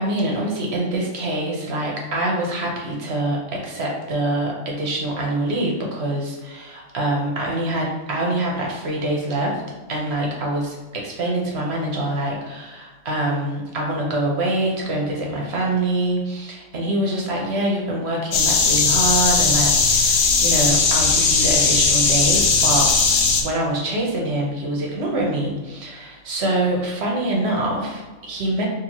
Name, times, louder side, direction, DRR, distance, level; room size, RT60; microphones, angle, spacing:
voice 1, 0.0-9.6 9.9-22.9 23.4-28.7, right 1 dB, 55° right, -1 dB, 1.0 m, -25 dB
sound 1, 18.3-23.4, left 4 dB, 80° left, 1.0 m, -18 dB
4.3 x 2.8 x 2.9 m, 1.3 s
omnidirectional pair, 1.4 m